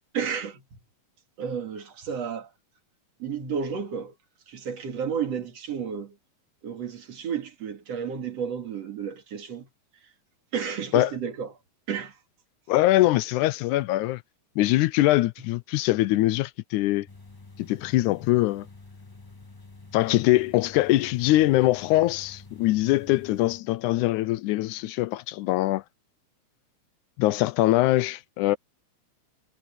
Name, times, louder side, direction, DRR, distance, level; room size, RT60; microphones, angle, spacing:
voice 1, 0.1-0.6 1.4-2.5 3.2-4.1 4.5-6.2 6.6-9.7 10.5-11.5 11.9-12.2, right 7 dB, 55° right, 3.2 m, -32 dB
voice 2, 12.7-14.2 14.6-17.1 17.6-18.7 19.9-25.8 27.2-28.6, left 17 dB, 85° left, 2.0 m, -23 dB
sound 1, 17.1-23.6, left 3 dB, 25° left, 0.4 m, -48 dB
omnidirectional pair, 3.5 m